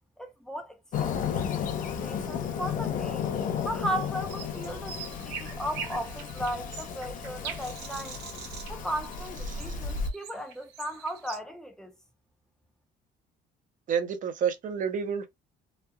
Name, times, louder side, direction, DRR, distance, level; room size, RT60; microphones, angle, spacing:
voice 1, 0.2-1.6 2.0-3.3 3.6-8.2 8.7-11.9, equal, 5° left, 0.7 m, -36 dB
Fireworks, 0.9-10.1, left 7 dB, 50° left, 0.6 m, -33 dB
sound 1, 4.3-11.4, right 7 dB, 80° right, 0.8 m, -43 dB
voice 2, 13.9-15.3, right 7 dB, 50° right, 0.7 m, -29 dB
3.1 x 2.1 x 2.3 m
cardioid pair, 110°, 17 cm